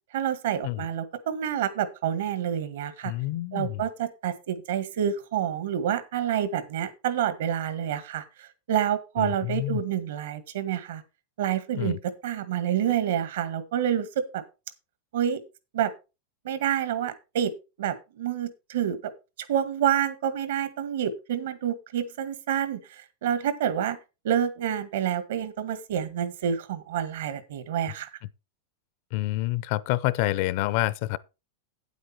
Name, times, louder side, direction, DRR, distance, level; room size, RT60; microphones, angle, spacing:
voice 1, 0.1-3.1 3.5-11.0 11.4-14.4 15.1-15.4 15.7-15.9 16.4-17.5 17.8-19.0 19.5-24.0 24.2-28.1, right 9 dB, 70° right, 1.8 m, -28 dB
voice 2, 3.0-3.8 9.2-9.8 11.7-12.0 29.1-31.2, left 18 dB, 40° left, 0.5 m, -28 dB
9.5 x 8.1 x 4.5 m
supercardioid pair, 175°, 0 cm